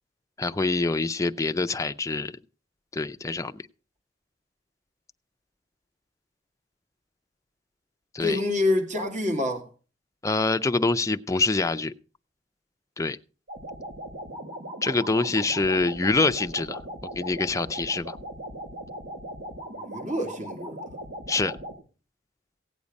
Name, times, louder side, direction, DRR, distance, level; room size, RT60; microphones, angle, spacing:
voice 1, 0.4-2.4 2.9-3.6 8.1-8.4 10.2-11.9 13.0-13.2 14.8-16.8 17.1-18.2 21.3-21.6, left 3 dB, 20° left, 0.5 m, -25 dB
voice 2, 8.2-9.6 19.8-20.8, left 2 dB, 40° right, 2.3 m, -26 dB
sound 1, 13.5-21.8, right 1 dB, 90° right, 2.9 m, -39 dB
16.5 x 8.4 x 5.3 m
head